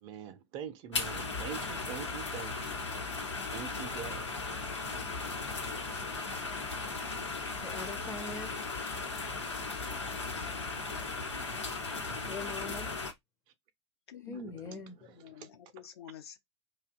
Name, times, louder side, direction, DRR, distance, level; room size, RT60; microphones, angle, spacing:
voice 1, 0.0-2.8 3.5-5.4 6.2-6.3 6.7-7.6 12.1-12.5 14.3-14.6 15.0-15.5, right 8 dB, 35° right, 0.4 m, -46 dB
sound 1, 0.9-13.1, left 3 dB, 75° left, 0.9 m, -37 dB
voice 2, 7.6-8.5 12.3-12.9 14.2-15.0, left 3 dB, 15° left, 0.5 m, -42 dB
voice 3, 14.1-16.4, left 10 dB, 60° left, 0.5 m, -50 dB
2.7 x 2.1 x 2.5 m
figure-of-eight pair, 90°, 15 cm